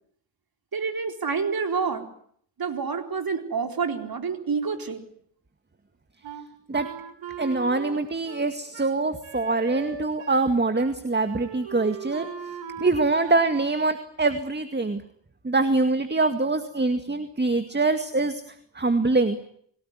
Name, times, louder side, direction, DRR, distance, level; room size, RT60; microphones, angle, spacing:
voice 1, 0.7-2.1 2.6-5.0, right 5 dB, 50° right, 6 dB, 4.3 m, -28 dB
Wind instrument woodwind instrument, 6.2-10.5 10.7-10.9 11.2-13.5, right 7 dB, 80° right, 3.7 m, -39 dB
voice 2, 7.4-12.3 12.8-15.0 15.4-18.4 18.7-19.4, right 3 dB, 25° right, 9 dB, 2.1 m, -24 dB
28.0 x 18.0 x 9.6 m, 0.66 s
cardioid pair, 65°, 45 cm